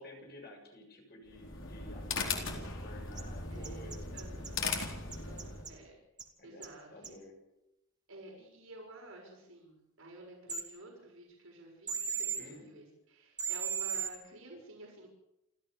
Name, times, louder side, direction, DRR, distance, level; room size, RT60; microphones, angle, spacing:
voice 1, 0.0-4.0 4.5-4.6 6.4-6.6 6.9-7.3 12.4-12.7, left 1 dB, 50° left, 2 dB, 7.4 m, -51 dB
sound 1, 1.3-5.7, left 4 dB, 65° left, 4.2 m, -38 dB
voice 2, 2.4-3.0 3.5-4.7 5.2-6.0 6.4-7.1 8.1-15.1, right 2 dB, 85° right, 0 dB, 6.5 m, -52 dB
sound 2, 3.2-3.3 3.6-4.8 5.1-5.7 6.2-6.3 6.6-6.7 7.0-7.1 10.5-10.6 11.9-12.4 13.4-14.1, right 7 dB, 20° right, 2.4 m, -35 dB
29.5 x 14.0 x 7.0 m, 0.88 s
head